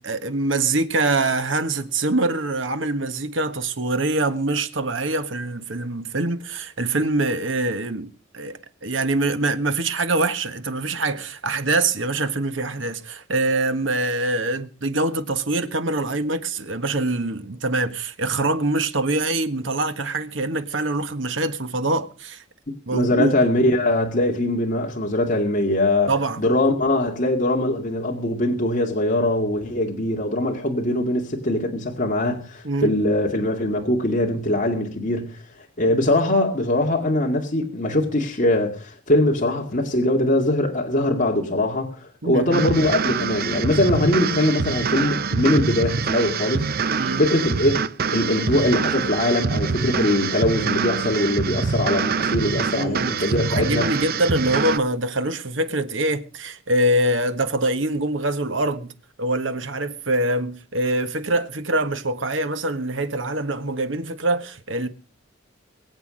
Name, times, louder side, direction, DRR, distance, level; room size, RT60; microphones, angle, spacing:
voice 1, 0.0-22.4 22.9-23.3 26.1-26.4 32.6-33.0 42.2-42.7 46.9-47.2 52.8-53.1 53.5-58.9 59.2-64.9, right 2 dB, 75° right, 1.5 m, -24 dB
voice 2, 22.9-35.4 35.8-46.6 47.2-47.8 48.1-53.9, left 1 dB, 40° left, 2.3 m, -22 dB
sound 1, 42.5-54.8, right 5 dB, 50° right, 0.6 m, -25 dB
23.0 x 8.2 x 5.2 m
head